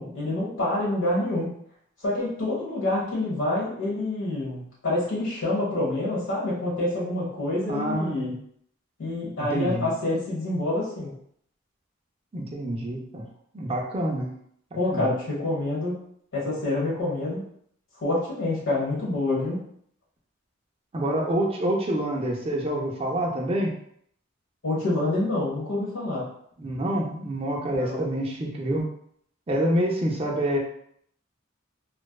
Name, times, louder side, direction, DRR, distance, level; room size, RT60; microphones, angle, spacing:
voice 1, 0.0-1.5 2.0-8.3 9.0-11.1 14.7-15.9 16.3-17.4 18.0-19.6 24.6-26.3 27.8-28.0, left 2 dB, 70° left, -6 dB, 1.1 m, -27 dB
voice 2, 7.7-8.3 9.4-9.9 12.3-13.2 13.5-14.3 14.9-15.1 20.9-23.7 26.6-28.9 29.5-30.6, right 1 dB, 30° right, -1 dB, 0.4 m, -27 dB
2.5 x 2.2 x 2.3 m, 0.67 s
head